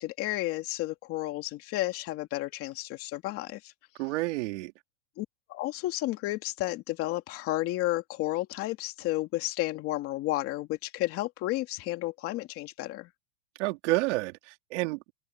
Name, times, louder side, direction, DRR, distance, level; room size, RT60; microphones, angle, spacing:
voice 1, 0.0-3.7 5.2-13.1, left 17 dB, 30° left, 2.6 m, -32 dB
voice 2, 4.0-4.7 13.6-15.1, right 21 dB, 50° right, 2.9 m, -30 dB
open air
supercardioid pair, 160°, 45 cm